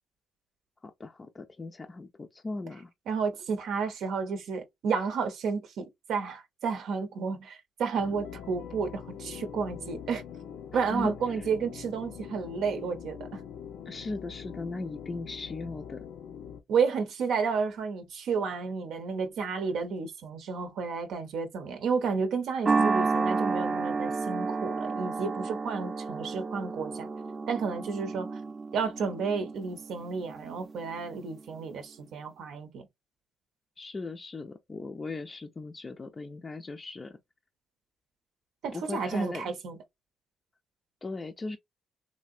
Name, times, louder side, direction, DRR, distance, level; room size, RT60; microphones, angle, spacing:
voice 1, 0.8-2.9 10.9-11.1 13.9-16.1 33.8-37.2 38.7-39.5 41.0-41.6, left 3 dB, 30° left, 0.4 m, -38 dB
voice 2, 3.1-10.2 10.7-13.4 16.7-27.1 27.5-28.3 28.7-32.9 38.6-39.8, right 5 dB, 75° right, 0.6 m, -31 dB
sound 1, 7.9-16.6, left 8 dB, 85° left, 0.5 m, -43 dB
sound 2, 22.7-31.2, right 4 dB, 30° right, 0.6 m, -31 dB
3.2 x 2.6 x 2.5 m
cardioid pair, 90°, 0 cm